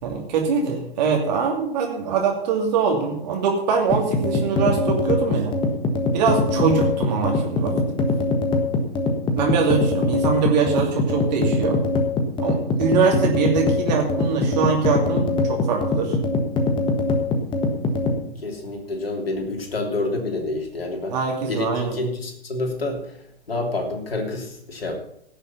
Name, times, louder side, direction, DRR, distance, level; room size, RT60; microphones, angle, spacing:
voice 1, 0.0-5.6 6.1-8.1 9.4-11.8 12.4-16.2 21.1-22.0, right 5 dB, 40° right, 0 dB, 2.6 m, -23 dB
sound 1, 3.9-18.2, left 2 dB, 15° left, 1.4 m, -22 dB
voice 2, 18.4-21.1 21.5-23.0 23.5-25.0, left 2 dB, 70° left, 2 dB, 3.2 m, -28 dB
17.0 x 7.0 x 5.7 m, 0.73 s
figure-of-eight pair, 115°, 31 cm